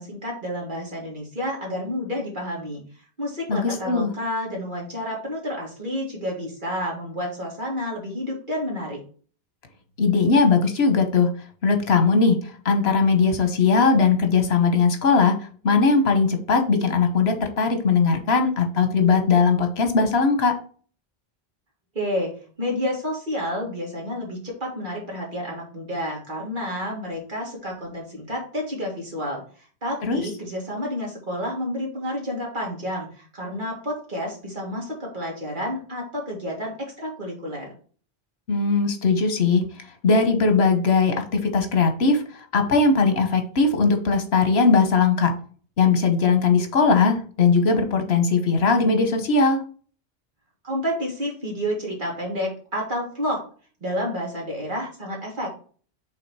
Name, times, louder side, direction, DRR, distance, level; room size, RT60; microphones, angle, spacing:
voice 1, 0.0-2.8 3.2-9.0 21.9-22.3 22.6-29.4 29.8-37.7 50.6-53.4 53.8-55.5, equal, 50° right, -2 dB, 2.3 m, -30 dB
voice 2, 3.5-4.1 10.0-11.3 11.6-15.4 15.6-20.6 30.0-30.2 38.5-39.7 40.0-45.3 45.8-49.6, left 4 dB, 80° left, 6 dB, 1.3 m, -19 dB
5.7 x 3.7 x 4.7 m, 0.42 s
omnidirectional pair, 1.0 m